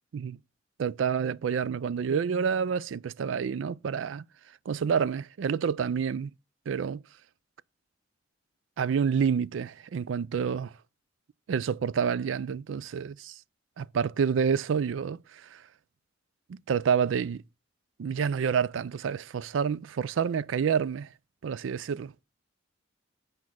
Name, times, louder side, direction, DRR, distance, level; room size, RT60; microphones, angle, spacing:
voice 1, 0.8-4.2 4.7-6.3 6.7-7.0 8.8-10.7 11.5-13.3 13.8-15.2 15.5-15.6 16.5-17.4 18.0-21.1 21.4-22.1, right 7 dB, 80° right, 0.4 m, -28 dB
8.5 x 5.2 x 6.0 m
head